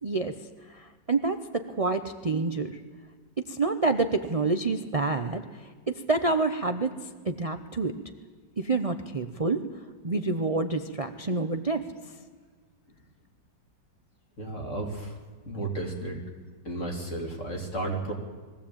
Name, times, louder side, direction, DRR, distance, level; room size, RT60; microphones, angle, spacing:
voice 1, 0.0-2.8 3.4-8.0 8.6-9.6 10.0-12.2, right 3 dB, 60° right, 8 dB, 0.3 m, -28 dB
voice 2, 14.4-15.2 15.5-16.2 16.6-18.1, right 2 dB, 40° left, 0 dB, 3.8 m, -33 dB
21.5 x 16.0 x 8.8 m, 1.5 s
omnidirectional pair, 2.0 m